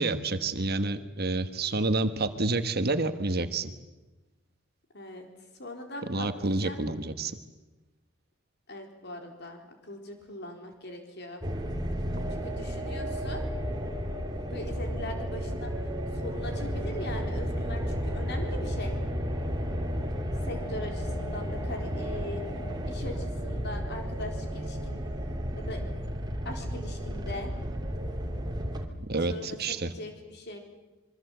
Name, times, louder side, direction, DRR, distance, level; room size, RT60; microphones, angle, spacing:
voice 1, 0.0-3.7 6.1-7.3 29.1-29.9, right 2 dB, 50° right, 9 dB, 1.4 m, -29 dB
voice 2, 4.9-5.2 5.5-6.9 8.7-11.4 12.3-13.4 14.4-19.0 20.4-22.4 22.9-25.0 25.6-25.8 26.4-27.5 29.3-30.6, left 1 dB, 55° left, 4 dB, 4.1 m, -40 dB
sound 1, 11.4-28.9, equal, 20° right, 2.7 m, -33 dB
27.0 x 23.5 x 8.0 m, 1.1 s
head